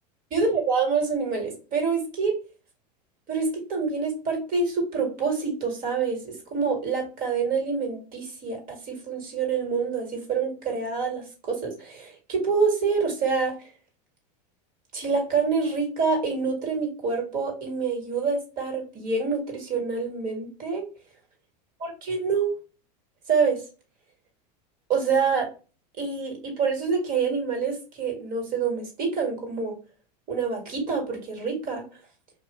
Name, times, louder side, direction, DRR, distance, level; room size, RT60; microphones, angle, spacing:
voice 1, 0.3-2.3 3.3-13.5 14.9-20.8 21.8-22.5 23.3-23.6 24.9-25.5 26.0-29.7 30.3-31.8, right 5 dB, 40° right, 1 dB, 1.5 m, -26 dB
2.7 x 2.4 x 3.0 m, 0.34 s
hypercardioid pair, 100°, 21 cm